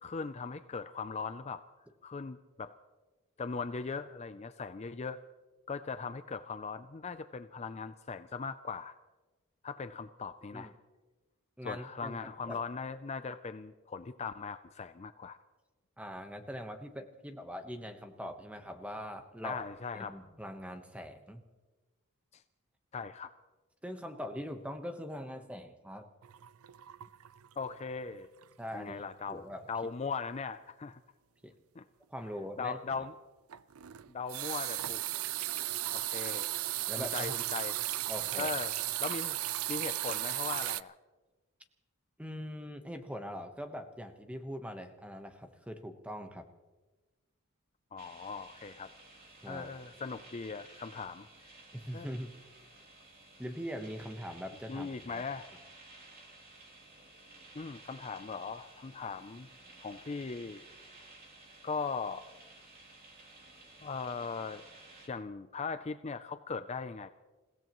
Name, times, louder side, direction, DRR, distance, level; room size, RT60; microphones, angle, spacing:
voice 1, 0.0-1.6 2.0-2.7 3.4-5.2 5.7-8.9 9.6-10.7 11.6-15.4 19.4-20.2 22.3-22.4 22.9-23.3 27.6-28.3 28.7-31.0 31.8-31.9 32.6-33.1 34.1-35.0 35.5-35.6 35.9-36.5 37.0-37.8 38.4-39.4 39.7-40.9 47.9-48.9 49.4-51.3 51.9-52.1 54.7-55.5 57.5-59.5 59.8-60.6 61.6-62.2 63.8-64.6 65.1-67.1, left 5 dB, 30° left, 10 dB, 0.4 m, -39 dB
voice 2, 11.6-12.6 16.0-19.6 19.9-21.4 23.8-26.1 28.6-29.6 31.4-31.5 32.1-33.1 36.9-37.3 38.1-38.5 42.2-46.4 49.4-49.7 51.7-52.3 53.4-55.2, equal, 5° right, 6 dB, 1.1 m, -42 dB
sound 1, 26.2-27.8 28.1-28.4 28.8-28.9 33.5-40.8, right 15 dB, 70° right, 0.4 m, -35 dB
sound 2, 48.0-65.1, right 2 dB, 45° right, 3.2 m, -55 dB
29.0 x 16.5 x 3.1 m, 1.2 s
head